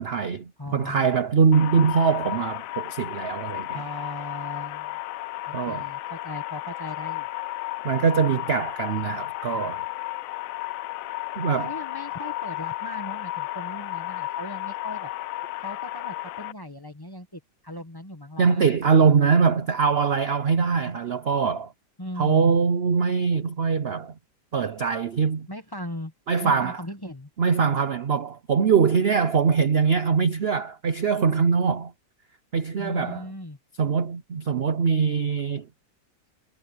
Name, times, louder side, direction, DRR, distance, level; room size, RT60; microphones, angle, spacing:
voice 1, 0.0-3.8 5.5-5.9 7.8-9.8 11.4-11.7 18.4-21.7 22.2-24.1 24.5-25.5 26.3-26.8 27.4-31.9 32.5-33.2 33.8-35.7, right 6 dB, 50° right, 0.7 m, -22 dB
voice 2, 0.6-1.1 3.7-5.0 5.5-7.3 11.5-15.1 15.6-18.8 22.0-22.5 25.5-26.1 26.4-27.3 32.8-33.6, left 1 dB, 15° left, 1.2 m, -38 dB
sound 1, 1.5-16.5, left 16 dB, 75° left, 0.7 m, -33 dB
omnidirectional pair, 1.9 m